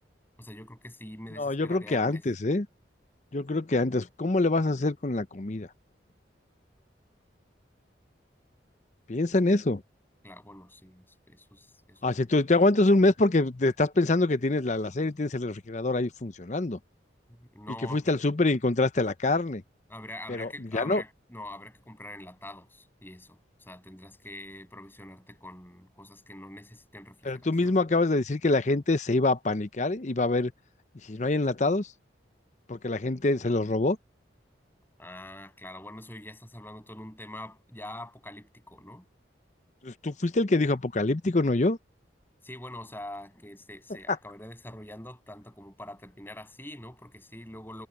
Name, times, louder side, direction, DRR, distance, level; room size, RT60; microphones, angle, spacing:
voice 1, 0.4-2.2 10.2-12.3 17.3-18.2 19.9-27.7 35.0-39.0 42.4-47.9, left 1 dB, 10° left, 7.5 m, -44 dB
voice 2, 1.4-2.7 3.3-5.7 9.1-9.8 12.0-16.8 17.9-19.6 20.3-21.0 27.3-30.5 31.1-31.9 32.7-34.0 39.8-41.8 44.1-44.2, left 2 dB, 40° left, 0.7 m, -25 dB
head